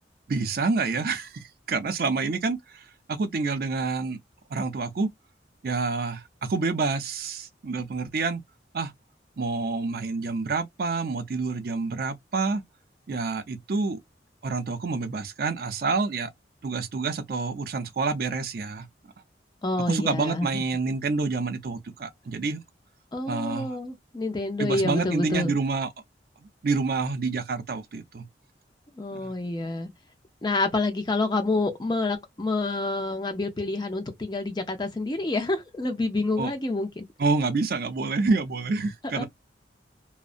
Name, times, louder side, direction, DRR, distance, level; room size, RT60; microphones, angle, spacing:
voice 1, 0.3-4.2 4.5-5.1 5.6-8.4 8.7-8.9 9.4-12.6 13.1-14.0 14.4-16.3 16.6-18.9 19.8-22.6 23.3-23.7 24.6-25.9 26.4-28.3 29.1-29.3 36.4-36.5 37.2-39.2, right 4 dB, 55° right, 0.4 m, -28 dB
voice 2, 19.6-20.6 23.1-25.5 29.0-29.9 30.4-37.1 39.1-39.2, left 2 dB, 25° left, 0.5 m, -28 dB
2.5 x 2.0 x 2.4 m
head